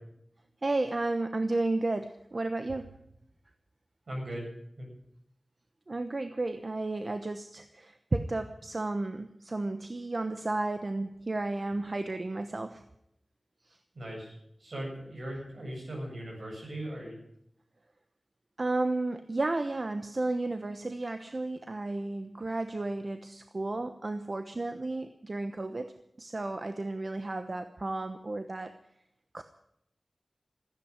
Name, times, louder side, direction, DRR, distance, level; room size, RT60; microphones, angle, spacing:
voice 1, 0.6-2.9 5.9-12.8 13.7-13.8 18.6-25.9 26.2-28.8 29.3-29.4, right 2 dB, 50° right, 8 dB, 1.0 m, -33 dB
voice 2, 4.1-4.5 4.8-4.9 13.9-17.2, right 1 dB, 75° right, -1 dB, 7.9 m, -39 dB
14.5 x 9.9 x 9.8 m, 0.76 s
wide cardioid pair, 50°, 0 cm